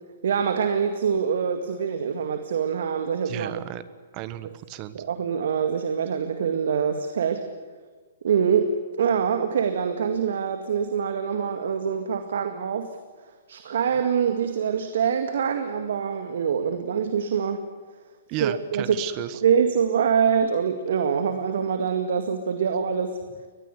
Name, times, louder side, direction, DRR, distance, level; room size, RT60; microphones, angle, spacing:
voice 1, 0.2-3.5 4.9-7.5 8.2-12.9 13.5-17.7 18.4-19.0 19.4-23.2, right 7 dB, 65° right, 8 dB, 2.0 m, -24 dB
voice 2, 3.2-3.8 4.1-5.0 18.3-19.4, right 14 dB, 35° right, 14 dB, 1.4 m, -34 dB
23.0 x 20.0 x 9.7 m, 1.4 s
hypercardioid pair, 125°, 0 cm